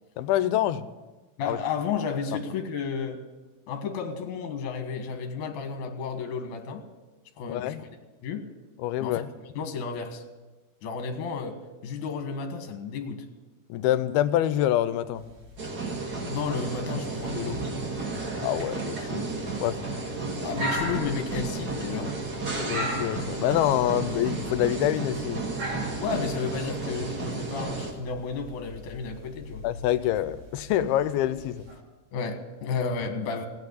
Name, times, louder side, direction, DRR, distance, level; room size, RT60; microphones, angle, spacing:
voice 1, 0.2-0.9 1.5-1.6 7.5-7.8 8.8-9.3 13.7-15.2 18.4-19.3 19.6-19.8 22.6-25.4 29.6-31.6, left 12 dB, 85° left, 12 dB, 2.6 m, -26 dB
voice 2, 1.4-3.2 3.7-6.8 7.4-7.9 8.2-8.4 9.0-9.2 9.6-10.2 10.8-13.2 16.3-17.6 20.4-22.1 26.0-29.6 32.1-33.5, left 5 dB, 60° left, 5 dB, 2.7 m, -32 dB
sound 1, 15.1-31.7, equal, 80° right, 5.8 m, -40 dB
sound 2, 15.6-27.9, right 3 dB, 35° right, 1.6 m, -33 dB
16.5 x 9.2 x 8.2 m, 1.2 s
omnidirectional pair, 4.4 m